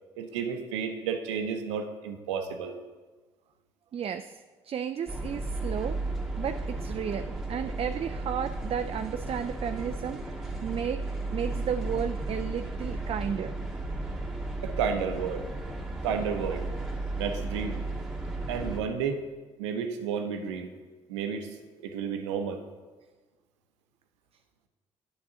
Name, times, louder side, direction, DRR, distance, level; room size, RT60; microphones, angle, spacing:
voice 1, 0.2-2.7 14.6-15.5 16.0-16.7 17.2-17.8 18.5-19.2 19.6-20.7 21.1-22.6, right 6 dB, 85° right, 7 dB, 0.6 m, -32 dB
voice 2, 3.9-6.0 6.4-11.1 11.3-13.6, right 8 dB, 40° right, 9 dB, 0.4 m, -33 dB
sound 1, 5.1-18.8, right 2 dB, 5° right, 1.7 m, -34 dB
9.5 x 7.6 x 2.8 m, 1.3 s
hypercardioid pair, 45°, 15 cm